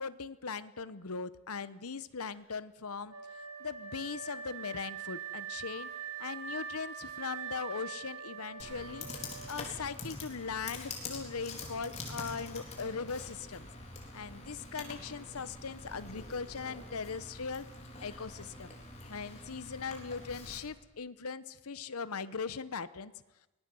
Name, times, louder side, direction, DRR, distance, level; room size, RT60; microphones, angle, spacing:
voice 1, 0.0-3.1 3.6-5.9 6.2-9.1 9.5-13.7 14.1-17.7 18.0-18.7 19.1-23.1, left 5 dB, 85° left, 15 dB, 0.9 m, -39 dB
Wind instrument woodwind instrument, 3.1-10.1, right 7 dB, 65° right, 2.8 m, -43 dB
Computer keyboard, 8.6-20.6, left 2 dB, 30° left, 3.9 m, -45 dB
23.5 x 19.5 x 7.7 m, 1.0 s
head